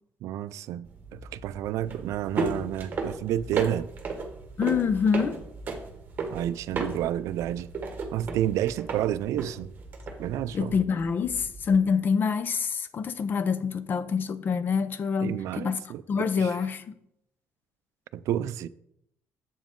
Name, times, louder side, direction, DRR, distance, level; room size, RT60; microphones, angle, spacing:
voice 1, 0.2-3.9 6.3-7.7 8.1-9.7 10.2-10.7 15.2-16.5 18.1-18.7, right 12 dB, 80° right, 0.3 m, -30 dB
sound 1, 0.8-11.8, right 3 dB, 35° right, 1.5 m, -35 dB
voice 2, 4.6-5.4 10.5-15.8 16.1-16.8, left 6 dB, 40° left, 0.5 m, -26 dB
7.8 x 7.3 x 3.7 m
cardioid pair, 135°, 5 cm